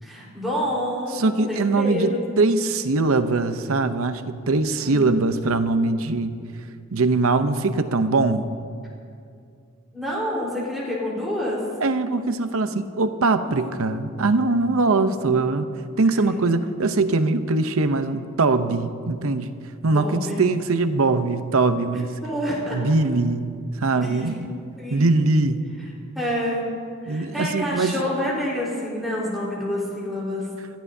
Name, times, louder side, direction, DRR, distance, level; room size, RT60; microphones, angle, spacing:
voice 1, 0.0-1.2 1.5-2.2 4.8-4.9 5.4-5.6 9.9-11.6 13.4-14.0 16.0-16.5 19.9-20.4 22.2-22.8 23.9-24.3 24.8-25.0 26.1-26.6 27.0-30.5, left 1 dB, ahead, -6 dB, 4.1 m, -28 dB
voice 2, 1.1-6.3 6.9-8.5 11.8-15.7 16.0-19.5 19.8-22.2 22.7-23.5 23.8-24.5 24.9-25.6 27.1-28.0, right 3 dB, 80° right, 10 dB, 0.7 m, -22 dB
25.5 x 14.5 x 2.7 m, 2.4 s
head